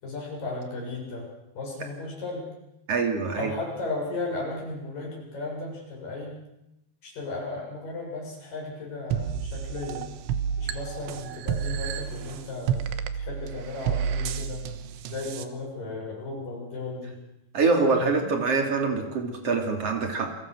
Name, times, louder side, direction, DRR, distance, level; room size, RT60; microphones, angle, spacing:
voice 1, 0.0-2.5 3.4-6.4 7.0-10.1 10.6-12.9 13.2-14.7 15.1-17.2 17.9-18.3, left 2 dB, 45° left, -2 dB, 9.2 m, -35 dB
voice 2, 2.9-3.5 17.5-20.3, right 4 dB, 35° right, 3 dB, 3.5 m, -25 dB
sound 1, 9.1-15.5, right 8 dB, 85° right, 3.6 m, -31 dB
30.0 x 22.5 x 6.5 m, 0.88 s
omnidirectional pair, 5.3 m